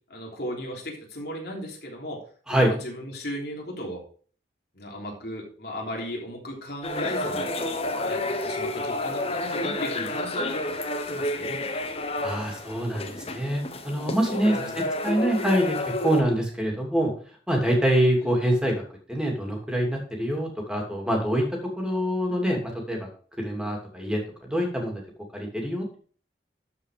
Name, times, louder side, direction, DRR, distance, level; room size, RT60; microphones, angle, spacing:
voice 1, 0.1-2.2 2.5-4.0 4.7-7.5 8.0-10.7 11.1-11.6 14.4-14.8 18.2-18.3, equal, 60° left, -2 dB, 3.5 m, -36 dB
sound 1, 6.8-16.2, left 2 dB, 35° left, 1.1 m, -30 dB
voice 2, 12.2-15.8 16.0-17.1 17.5-18.8 19.1-21.4 21.8-23.1 23.4-25.0 25.3-26.0, right 1 dB, 5° right, 0 dB, 2.6 m, -25 dB
12.5 x 5.0 x 5.0 m, 0.43 s
head